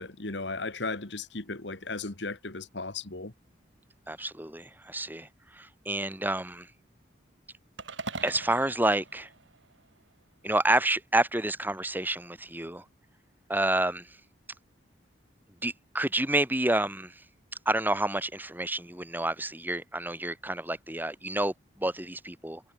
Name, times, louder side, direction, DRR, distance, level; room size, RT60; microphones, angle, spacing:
voice 1, 0.0-3.3, left 3 dB, 65° left, 2.0 m, -36 dB
voice 2, 4.1-6.7 8.2-9.3 10.4-12.8 13.5-14.1 15.6-17.1 17.7-22.6, right 1 dB, 10° right, 6.2 m, -29 dB
sound 1, 7.8-10.1, right 3 dB, 75° right, 6.2 m, -42 dB
head